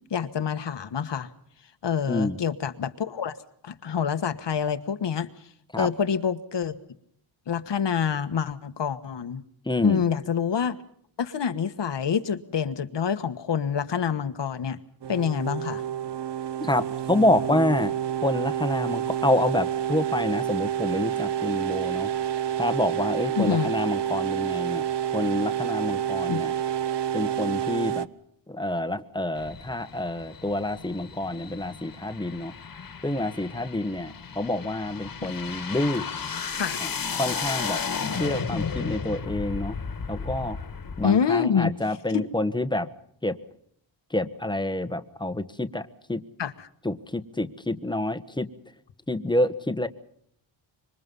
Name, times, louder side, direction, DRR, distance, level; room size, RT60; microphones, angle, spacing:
voice 1, 0.1-1.3 1.8-3.4 3.6-5.3 5.8-6.8 7.5-9.4 9.8-10.8 11.2-14.8 15.1-15.8 23.4-23.7 26.3-26.4 35.2-35.3 36.6-36.8 41.0-41.7 42.1-42.3 46.4-46.7, left 7 dB, 60° left, 10 dB, 1.5 m, -26 dB
voice 2, 2.1-2.4 5.7-5.9 9.6-10.0 16.6-17.9 18.2-22.1 22.6-24.8 25.1-26.5 27.1-28.1 28.5-32.5 33.0-36.0 36.8-36.9 37.2-37.8 38.1-39.8 40.1-40.6 41.0-42.9 43.2-43.4 44.1-46.2 46.8-48.5 49.1-49.9, left 1 dB, 10° left, 10 dB, 1.4 m, -27 dB
sound 1, 15.0-28.1, right 10 dB, 60° right, 1.0 m, -28 dB
sound 2, 29.3-41.1, left 6 dB, 45° left, 1.9 m, -34 dB
26.5 x 24.0 x 5.5 m, 0.66 s
wide cardioid pair, 130°, 48 cm